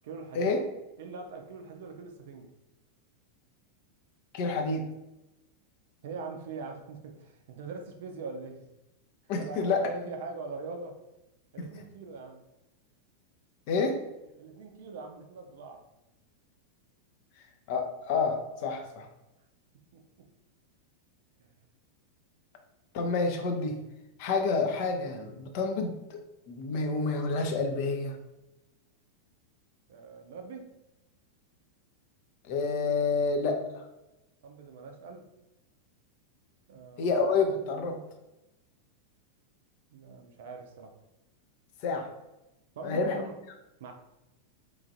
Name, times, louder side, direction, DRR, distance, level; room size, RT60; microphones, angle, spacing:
voice 1, 0.0-0.5 1.0-2.5 6.0-8.6 9.4-11.0 11.5-12.4 14.4-15.8 19.9-20.3 21.4-21.5 29.9-30.7 34.4-35.3 36.7-37.1 39.9-41.0 42.8-43.3 43.8-43.9, right 4 dB, 55° right, 4 dB, 0.4 m, -42 dB
voice 2, 4.3-4.9 9.3-9.9 11.6-11.7 13.7-14.0 17.7-19.1 22.9-23.8 24.2-28.2 32.4-33.8 37.0-38.0 41.8-42.1 42.8-43.3, left 4 dB, 45° left, 4 dB, 0.4 m, -29 dB
3.0 x 2.4 x 2.6 m, 0.95 s
figure-of-eight pair, 90°, 0 cm